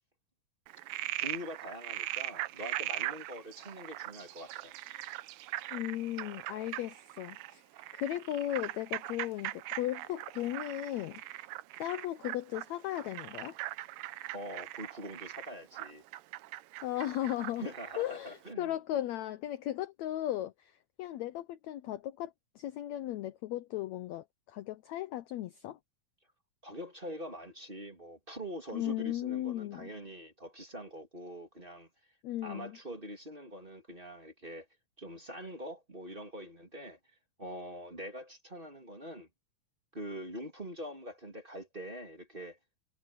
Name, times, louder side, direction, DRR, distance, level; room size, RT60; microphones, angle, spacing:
Frog, 0.7-18.1, right 16 dB, 80° right, 2.3 m, -40 dB
voice 1, 1.2-4.7 14.3-16.0 17.6-18.8 26.6-31.9 32.4-34.6 35.0-37.0 37.4-39.3 39.9-42.6, equal, 15° right, 2.8 m, -44 dB
voice 2, 5.7-7.6 7.9-11.2 11.8-13.6 16.8-17.7 18.0-25.8 28.7-29.9 32.2-32.8, left 13 dB, 75° left, 1.6 m, -36 dB
omnidirectional pair, 3.9 m